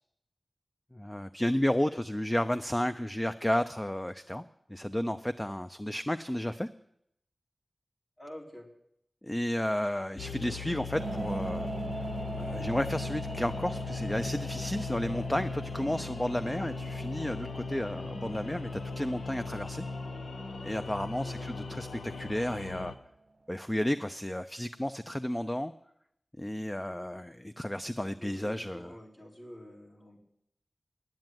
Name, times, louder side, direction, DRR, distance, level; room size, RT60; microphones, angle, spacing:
voice 1, 0.9-4.4 4.7-6.7 9.2-11.7 12.3-19.9 20.6-22.9 23.5-25.7 26.4-29.0, left 1 dB, 15° left, 10 dB, 0.4 m, -32 dB
voice 2, 8.2-8.7 10.3-10.7 21.2-21.5 28.1-30.2, equal, 45° left, -2 dB, 3.5 m, -48 dB
sound 1, 10.2-22.9, left 4 dB, 85° left, 0.7 m, -38 dB
sound 2, 10.9-22.7, right 3 dB, 55° right, 0.6 m, -42 dB
9.7 x 9.1 x 9.1 m, 0.75 s
wide cardioid pair, 80°, 0 cm